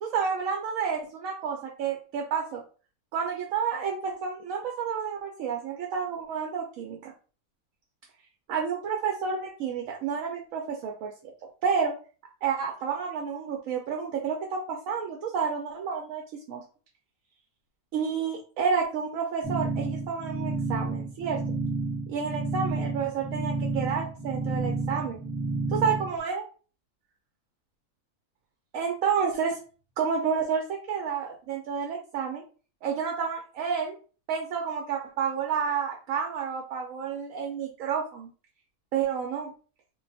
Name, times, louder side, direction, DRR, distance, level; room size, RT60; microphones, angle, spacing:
voice 1, 0.0-2.6 3.1-7.1 8.5-11.1 11.6-11.9 12.4-16.2 16.5-16.6 17.9-21.4 22.1-25.2 25.7-26.4 28.7-29.6 30.0-32.4 32.8-34.0 34.3-38.3 38.9-39.5, right 6 dB, 70° right, 1 dB, 0.9 m, -30 dB
sound 1, 19.4-26.2, right 3 dB, 5° right, 0.6 m, -31 dB
2.4 x 2.3 x 3.9 m, 0.38 s
omnidirectional pair, 1.5 m